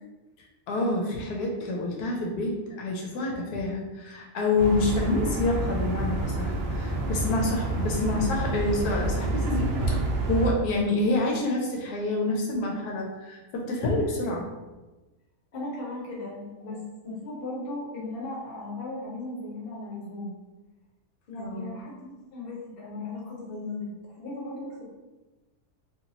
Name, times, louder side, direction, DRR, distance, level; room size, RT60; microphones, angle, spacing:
voice 1, 0.7-14.5 21.4-21.8, left 2 dB, 85° left, -1 dB, 1.1 m, -28 dB
sound 1, 4.6-10.5, right 2 dB, 60° right, 0.6 m, -28 dB
voice 2, 15.5-20.3 21.3-24.8, left 2 dB, 45° left, -4 dB, 1.0 m, -37 dB
2.9 x 2.7 x 2.7 m, 1.1 s
omnidirectional pair, 1.6 m